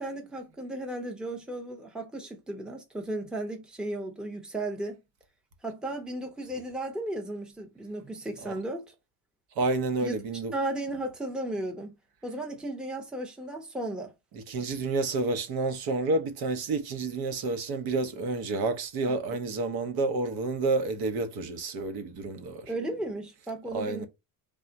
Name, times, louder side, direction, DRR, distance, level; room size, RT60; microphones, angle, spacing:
voice 1, 0.0-5.0 5.6-8.8 10.0-10.1 10.5-11.9 12.2-14.1 22.7-24.0, right 1 dB, ahead, 0.6 m, -35 dB
voice 2, 9.6-10.5 14.3-22.7 23.7-24.1, right 3 dB, 60° right, 0.9 m, -29 dB
3.5 x 2.3 x 3.8 m
cardioid pair, 130°, 41 cm